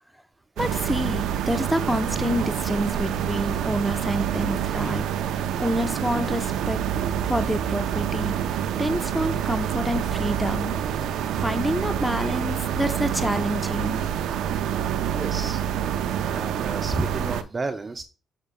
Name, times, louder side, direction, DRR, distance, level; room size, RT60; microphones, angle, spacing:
voice 1, 0.6-5.1 5.6-6.8 7.3-8.3 8.8-10.8 11.4-14.1, equal, ahead, 10 dB, 0.8 m, -27 dB
sound 1, 0.6-17.4, right 9 dB, 80° right, 0.6 m, -27 dB
voice 2, 15.1-15.6 16.3-18.0, right 3 dB, 30° right, 7 dB, 0.6 m, -33 dB
8.2 x 6.1 x 2.3 m, 0.34 s
cardioid pair, 75°, 0 cm